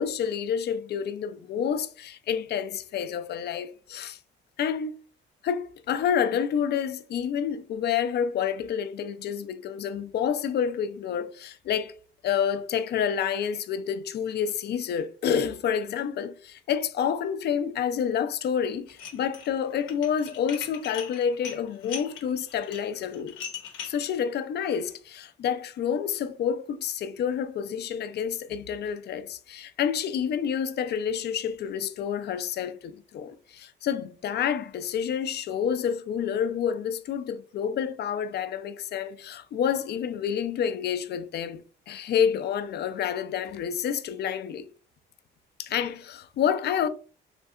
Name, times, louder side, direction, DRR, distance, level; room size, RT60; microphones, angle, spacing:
voice 1, 0.0-4.2 4.6-5.0 5.4-11.9 12.2-23.3 23.8-44.7 45.6-46.9, left 8 dB, 55° left, 0.4 m, -29 dB
Dishes pots and pans, 18.9-19.5 19.8-24.0, left 7 dB, 90° left, 0.8 m, -39 dB
3.3 x 2.7 x 2.3 m
cardioid pair, 90°, 20 cm